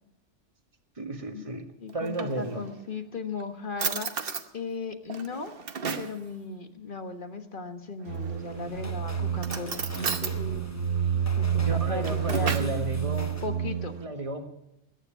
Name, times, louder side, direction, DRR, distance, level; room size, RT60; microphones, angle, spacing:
voice 1, 1.0-1.6 1.9-2.6 11.6-13.4 14.0-14.5, right 2 dB, 30° right, 5 dB, 1.6 m, -33 dB
voice 2, 1.8-5.5 6.0-10.7 11.4-12.7 13.4-13.9, left 4 dB, 45° left, 6 dB, 1.5 m, -37 dB
Drawer open or close, 1.9-2.8 3.4-3.5 3.8-4.5 5.1-6.2 8.1-8.6 9.4-10.4 11.7-12.8, right 5 dB, 50° right, 1.1 m, -34 dB
sound 1, 8.1-14.0, right 8 dB, 80° right, 1.4 m, -29 dB
sound 2, 8.3-13.6, left 3 dB, 15° left, 0.7 m, -45 dB
21.5 x 9.9 x 5.8 m, 0.84 s
omnidirectional pair, 1.2 m